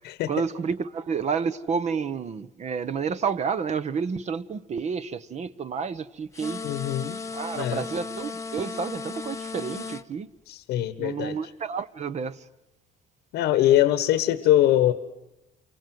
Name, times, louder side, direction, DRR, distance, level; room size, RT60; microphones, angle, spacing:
voice 1, 0.3-6.6 7.3-10.3 11.0-12.4, right 6 dB, 40° right, 1.1 m, -30 dB
sound 1, 6.3-10.0, left 4 dB, 20° left, 1.0 m, -36 dB
voice 2, 6.6-7.2 7.6-7.8 10.5-11.3 13.3-14.9, left 13 dB, 85° left, 1.4 m, -22 dB
29.0 x 23.5 x 7.8 m
cardioid pair, 110°, 17 cm